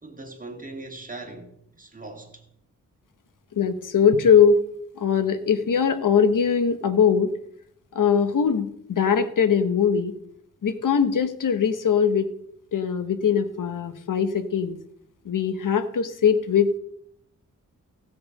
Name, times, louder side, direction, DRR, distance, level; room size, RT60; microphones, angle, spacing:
voice 1, 0.0-2.4, right 2 dB, 25° right, 2.6 m, -40 dB
voice 2, 3.6-4.6 5.0-7.3 7.9-10.1 10.6-12.3 12.7-14.8 15.3-16.8, left 7 dB, 75° left, 1.2 m, -21 dB
16.0 x 7.8 x 5.3 m
wide cardioid pair, 115°, 32 cm